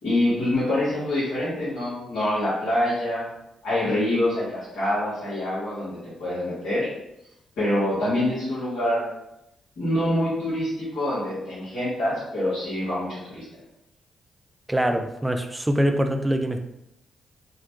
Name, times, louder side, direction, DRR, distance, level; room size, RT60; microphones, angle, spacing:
voice 1, 0.0-3.3 3.6-6.9 7.6-9.1 9.8-13.4, left 1 dB, 80° left, -10 dB, 1.4 m, -25 dB
voice 2, 14.7-16.6, equal, 15° right, 6 dB, 0.4 m, -24 dB
2.8 x 2.1 x 3.0 m, 0.85 s
hypercardioid pair, 45°, 0 cm